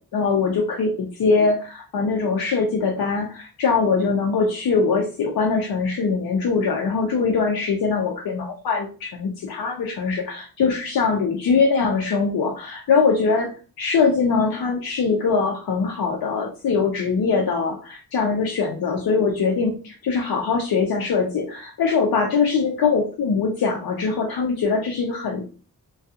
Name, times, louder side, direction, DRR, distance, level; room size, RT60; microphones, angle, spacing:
voice 1, 0.1-13.5 13.8-25.4, left 4 dB, 75° left, -1 dB, 0.6 m, -22 dB
2.3 x 2.3 x 2.7 m, 0.36 s
cardioid pair, 75°, 36 cm